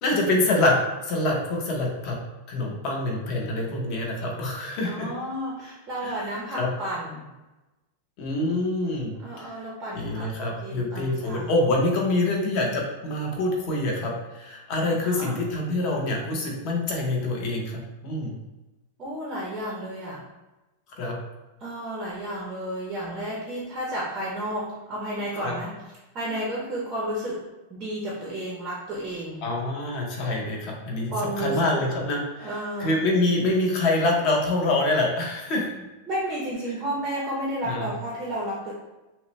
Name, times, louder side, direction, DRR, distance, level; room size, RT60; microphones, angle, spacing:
voice 1, 0.0-0.7 1.0-2.2 2.5-5.1 6.0-6.7 8.2-9.6 9.9-18.4 21.0-21.2 25.4-25.5 29.4-31.1 31.4-35.7 37.6-37.9, left 2 dB, 30° left, -1 dB, 0.8 m, -26 dB
voice 2, 4.8-7.3 9.2-10.3 10.6-11.5 14.8-15.4 19.0-20.2 21.6-25.8 26.1-27.4 27.7-29.4 31.1-31.8 32.4-32.9 36.1-38.7, right 1 dB, 20° right, -3 dB, 0.6 m, -32 dB
5.6 x 2.0 x 3.1 m, 1.1 s
supercardioid pair, 180°, 0 cm